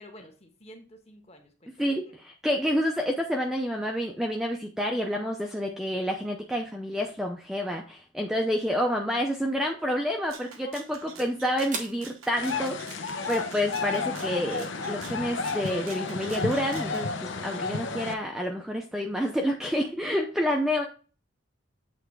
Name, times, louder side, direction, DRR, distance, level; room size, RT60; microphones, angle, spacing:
voice 1, 0.0-1.9 10.5-11.4, left 1 dB, 30° left, 3 dB, 1.4 m, -49 dB
voice 2, 1.8-20.9, equal, ahead, 1 dB, 0.6 m, -29 dB
sound 1, 9.2-17.4, right 4 dB, 40° right, 0.9 m, -47 dB
Rattle (instrument), 10.3-17.0, right 6 dB, 85° right, 1.1 m, -47 dB
sound 2, 12.4-18.1, left 4 dB, 65° left, 0.8 m, -32 dB
8.1 x 3.3 x 4.7 m, 0.36 s
head